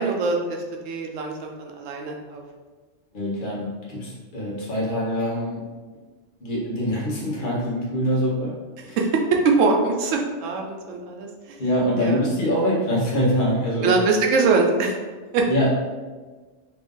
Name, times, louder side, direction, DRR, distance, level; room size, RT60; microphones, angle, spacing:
voice 1, 0.0-2.4 9.0-9.1 9.4-11.6 12.0-12.3 13.8-15.0 15.3-15.5, right 4 dB, 90° right, 1 dB, 1.0 m, -23 dB
voice 2, 3.1-5.6 6.4-8.5 8.9-9.0 11.6-13.9 15.5-15.7, equal, 45° left, -5 dB, 1.1 m, -24 dB
3.1 x 2.5 x 3.6 m, 1.4 s
omnidirectional pair, 1.3 m